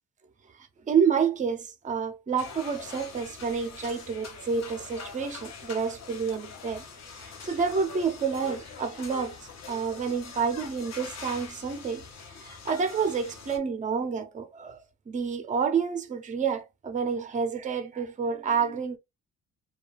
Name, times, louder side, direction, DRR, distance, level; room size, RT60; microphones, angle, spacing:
voice 1, 0.5-6.8 7.2-12.0 12.3-19.0, right 6 dB, 25° right, 0.5 m, -29 dB
sound 1, 2.4-13.6, left 5 dB, 60° left, 0.8 m, -43 dB
2.3 x 2.2 x 3.2 m
cardioid pair, 90°, 30 cm